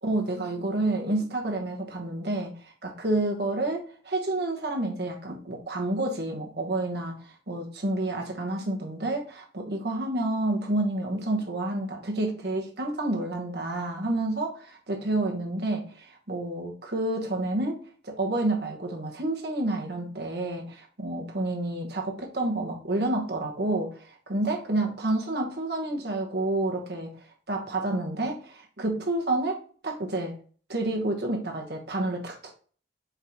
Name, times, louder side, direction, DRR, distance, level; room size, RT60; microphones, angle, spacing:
voice 1, 0.0-17.8 18.0-27.1 27.5-30.3 30.7-32.5, right 2 dB, 60° right, 1 dB, 1.1 m, -29 dB
4.6 x 3.7 x 2.9 m, 0.42 s
head